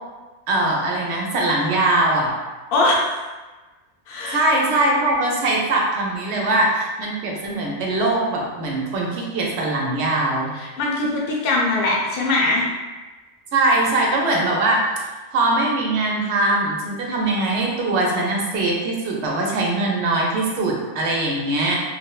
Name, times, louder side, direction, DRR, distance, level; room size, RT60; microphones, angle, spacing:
voice 1, 0.5-2.3 4.3-10.5 13.5-14.8 15.3-21.8, right 2 dB, 70° right, -2 dB, 0.8 m, -21 dB
voice 2, 2.7-3.2 4.1-4.4 6.3-6.5 10.5-12.7, left 2 dB, 60° left, -2 dB, 0.7 m, -21 dB
3.0 x 2.0 x 2.3 m, 1.2 s
omnidirectional pair, 1.2 m